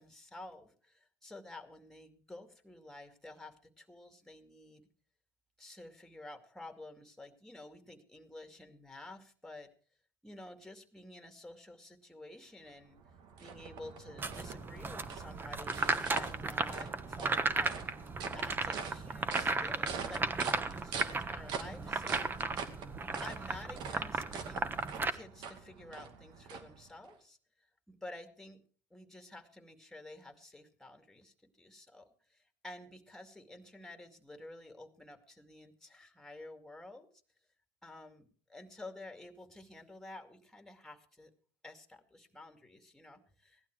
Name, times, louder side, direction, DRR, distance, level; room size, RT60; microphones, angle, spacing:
voice 1, 0.0-4.8 5.6-9.7 10.2-13.0 13.4-17.8 18.3-22.6 23.2-24.7 25.1-27.4 27.9-28.6 28.9-37.1 37.8-41.3 41.6-43.6, left 2 dB, 5° left, 6 dB, 2.4 m, -51 dB
sound 1, 12.7-27.2, right 6 dB, 65° right, 2.2 m, -44 dB
sound 2, 14.2-25.1, right 3 dB, 25° right, 1.2 m, -35 dB
16.5 x 11.5 x 4.7 m, 0.42 s
supercardioid pair, 105°, 8 cm